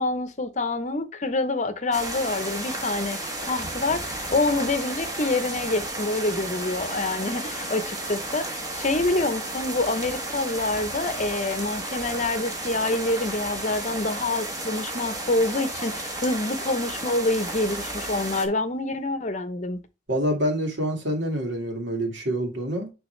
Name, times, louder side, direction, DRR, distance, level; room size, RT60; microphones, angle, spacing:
voice 1, 0.0-19.8, left 2 dB, 40° left, 0.8 m, -26 dB
sound 1, 1.9-18.5, right 2 dB, 20° right, 1.2 m, -33 dB
voice 2, 20.1-22.9, equal, 75° right, 2.1 m, -26 dB
9.5 x 3.5 x 3.2 m
head